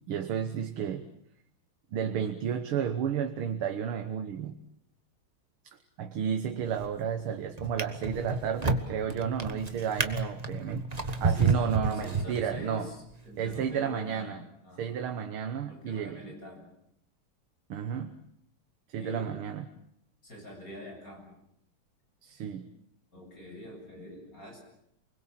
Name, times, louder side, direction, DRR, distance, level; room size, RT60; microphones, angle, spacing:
voice 1, 0.1-1.1 1.9-4.6 6.0-12.9 13.4-14.4 14.8-16.2 17.7-18.2 18.9-19.7 22.2-22.7, right 8 dB, 80° right, 7 dB, 2.0 m, -32 dB
Drawer open or close, 6.6-7.0 7.6-12.8 13.5-13.6, right 4 dB, 20° right, 1.2 m, -30 dB
voice 2, 11.2-15.0 15.7-16.7 19.0-19.4 20.2-21.3 23.1-24.6, left 1 dB, 40° left, 1 dB, 8.4 m, -45 dB
28.5 x 21.5 x 7.5 m, 0.74 s
omnidirectional pair, 2.4 m